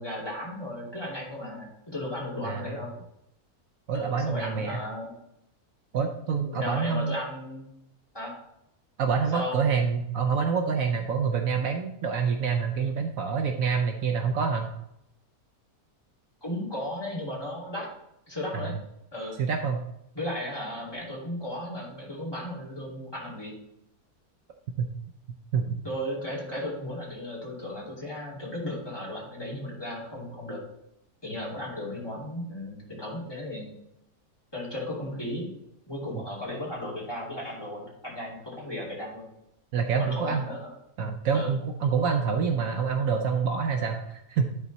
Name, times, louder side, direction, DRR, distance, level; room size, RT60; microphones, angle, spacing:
voice 1, 0.0-2.9 3.9-5.1 6.2-7.7 8.1-8.3 9.3-9.6 16.4-17.9 18.3-18.8 19.1-19.4 20.1-23.5 25.7-30.6 31.2-33.7 34.5-35.5 35.9-39.3 40.0-40.7 41.3-41.5, left 1 dB, 15° left, -6 dB, 2.6 m, -35 dB
voice 2, 2.4-2.8 3.9-4.8 5.9-7.2 9.0-14.7 18.5-18.8 19.4-19.8 24.8-24.9 25.5-25.8 39.7-40.4 41.0-44.5, right 6 dB, 70° right, 4 dB, 1.0 m, -27 dB
11.0 x 4.1 x 4.1 m, 0.83 s
omnidirectional pair, 1.6 m